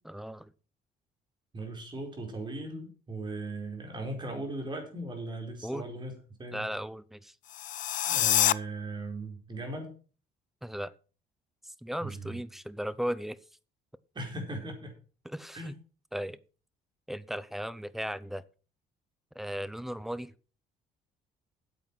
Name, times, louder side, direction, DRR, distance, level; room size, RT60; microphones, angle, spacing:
voice 1, 0.1-0.5 5.6-5.8 6.5-7.3 10.6-10.9 11.6-13.4 15.2-15.8 16.1-16.4 17.1-18.4 19.3-20.3, equal, ahead, 18 dB, 0.6 m, -36 dB
voice 2, 1.5-6.1 6.4-6.7 8.1-9.9 12.0-12.4 14.1-14.9 15.5-15.8, right 2 dB, 25° right, 2 dB, 4.5 m, -38 dB
sound 1, 7.5-8.5, left 13 dB, 50° left, 0.4 m, -26 dB
8.8 x 8.1 x 6.0 m, 0.38 s
cardioid pair, 110°, 17 cm